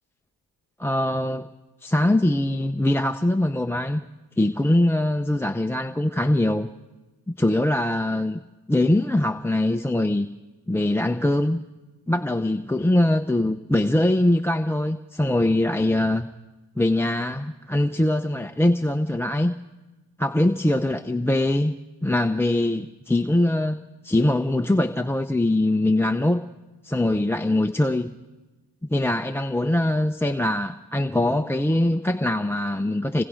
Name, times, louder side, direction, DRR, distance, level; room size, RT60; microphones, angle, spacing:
voice 1, 0.8-1.5 1.8-4.0 4.4-6.7 7.3-8.4 8.7-10.3 10.7-11.6 12.1-16.3 16.8-19.5 20.2-21.7 22.0-26.4 26.8-28.1 28.8-33.2, left 1 dB, 5° left, 10 dB, 0.7 m, -22 dB
27.0 x 20.5 x 5.1 m, 1.2 s
cardioid pair, 50°, 44 cm